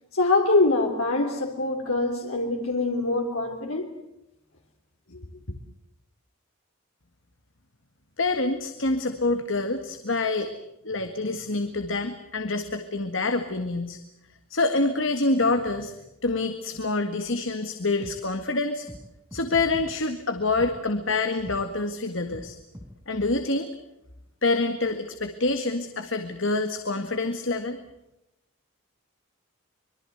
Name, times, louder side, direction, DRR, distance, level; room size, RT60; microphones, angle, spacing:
voice 1, 0.1-3.9 5.1-5.2, left 2 dB, 90° left, 3.2 m, -24 dB
voice 2, 8.2-10.5 10.8-14.0 14.5-15.9 16.2-18.9 19.3-22.6 23.1-23.7 24.4-27.8, left 3 dB, 65° left, 1.8 m, -26 dB
sound 1, 17.2-17.3 18.0-18.1 18.9-19.0 19.3-19.9 20.6-20.7 21.4-21.6 22.3-22.5 22.7-22.9, equal, 15° right, 5.8 m, -42 dB
25.5 x 23.0 x 8.0 m
head